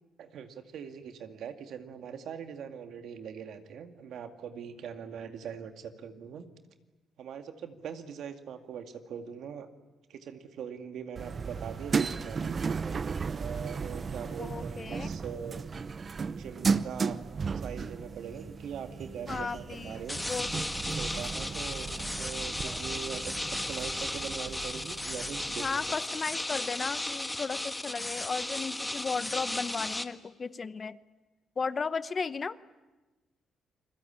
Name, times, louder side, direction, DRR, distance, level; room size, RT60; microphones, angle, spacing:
voice 1, 0.2-6.5 7.2-9.7 10.1-12.6 13.3-15.7 16.4-17.2 17.5-20.2 21.0-26.0, right 7 dB, 70° right, 7 dB, 2.1 m, -42 dB
sound 1, 11.2-26.0, right 5 dB, 40° right, 0.8 m, -35 dB
voice 2, 14.4-15.1 19.3-20.5 25.6-31.0 31.6-32.6, left 5 dB, 35° left, 15 dB, 0.9 m, -35 dB
sound 2, 20.1-30.0, left 1 dB, 10° left, 1.5 m, -35 dB
29.0 x 21.5 x 8.8 m, 1.2 s
cardioid pair, 90°, 0 cm